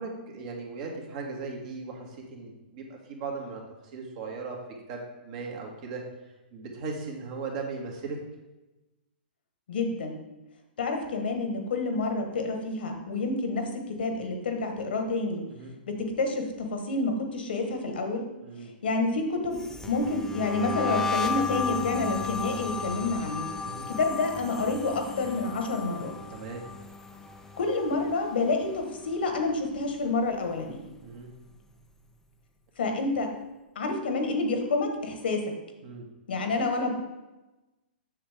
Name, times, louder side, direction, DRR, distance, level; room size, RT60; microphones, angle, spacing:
voice 1, 0.0-3.6 3.9-4.6 4.9-6.0 6.5-8.2 15.5-15.7 18.4-18.7 23.6-23.9 26.3-26.6 31.0-31.3 35.8-36.1, right 4 dB, 45° right, 0 dB, 1.8 m, -37 dB
voice 2, 9.7-10.2 10.8-15.4 15.9-18.2 18.8-19.6 19.9-23.5 23.9-26.1 27.6-30.8 32.8-33.3 33.7-35.5 36.3-36.9, left 3 dB, 70° left, 4 dB, 1.4 m, -28 dB
sound 1, 19.5-28.7 29.0-29.4 29.7-31.3, left 4 dB, 10° left, 0.6 m, -35 dB
7.1 x 6.7 x 3.6 m, 1.1 s
hypercardioid pair, 125°, 6 cm